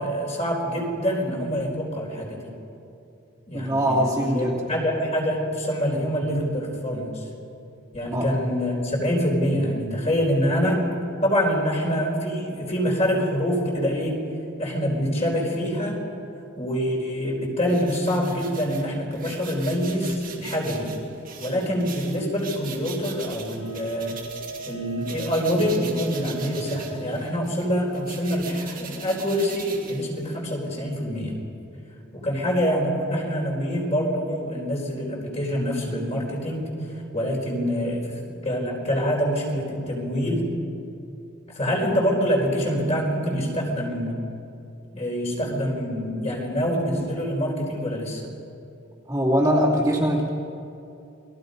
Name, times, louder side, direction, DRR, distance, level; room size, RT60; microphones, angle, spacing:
voice 1, 0.0-2.5 3.5-7.2 7.9-10.8 11.2-14.2 14.6-16.0 16.6-20.9 21.4-24.2 24.7-31.4 32.1-36.7 37.1-40.5 41.5-44.2 44.9-48.2, equal, 30° left, -1 dB, 4.5 m, -25 dB
voice 2, 3.5-4.6 8.1-8.3 49.1-50.3, equal, 15° right, -5 dB, 2.8 m, -22 dB
sound 1, 17.7-24.8 25.0-30.5, right 7 dB, 45° right, 2.6 m, -41 dB
Wind instrument woodwind instrument, 23.6-27.3, right 5 dB, 75° left, 3.3 m, -41 dB
29.0 x 21.5 x 5.4 m, 2.8 s
head